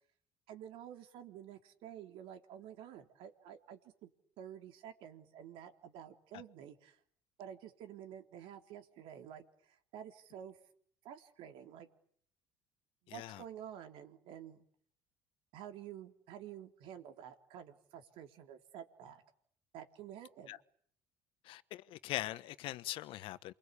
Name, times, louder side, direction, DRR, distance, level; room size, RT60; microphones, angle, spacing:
voice 1, 0.5-4.1 4.4-7.0 7.4-10.6 11.0-11.9 13.0-14.6 15.5-19.2 19.7-20.6, right 9 dB, 70° right, 3.7 m, -50 dB
voice 2, 13.1-13.4 20.5-20.6 21.4-23.5, left 15 dB, 70° left, 1.3 m, -41 dB
28.5 x 23.5 x 8.6 m
supercardioid pair, 85°, 9 cm